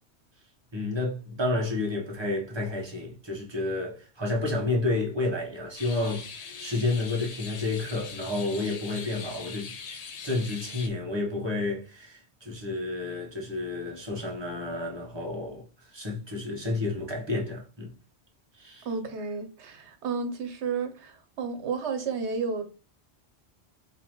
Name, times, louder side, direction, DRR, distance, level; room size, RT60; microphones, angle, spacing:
voice 1, 0.7-9.9 10.2-17.9 18.5-18.9, left 2 dB, 25° right, 1.1 m, -30 dB
sound 1, 5.8-10.9, left 5 dB, 50° left, 0.5 m, -41 dB
voice 2, 18.8-22.6, right 5 dB, 80° right, 1.1 m, -32 dB
3.9 x 2.8 x 3.0 m
omnidirectional pair, 1.2 m